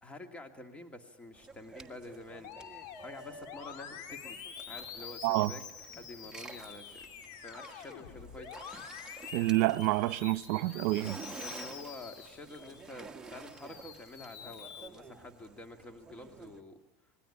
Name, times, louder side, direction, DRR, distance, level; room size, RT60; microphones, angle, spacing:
voice 1, 0.0-2.5 2.8-4.4 4.7-5.7 5.9-7.1 7.4-8.5 11.4-16.8, left 2 dB, 15° left, 2.3 m, -48 dB
sound 1, 1.3-16.6, right 4 dB, 10° right, 1.7 m, -51 dB
Musical instrument, 2.4-12.9 13.3-14.9, left 7 dB, 55° left, 2.7 m, -47 dB
voice 2, 9.3-11.2, right 18 dB, 70° right, 0.9 m, -28 dB
27.0 x 21.5 x 10.0 m
supercardioid pair, 135°, 9 cm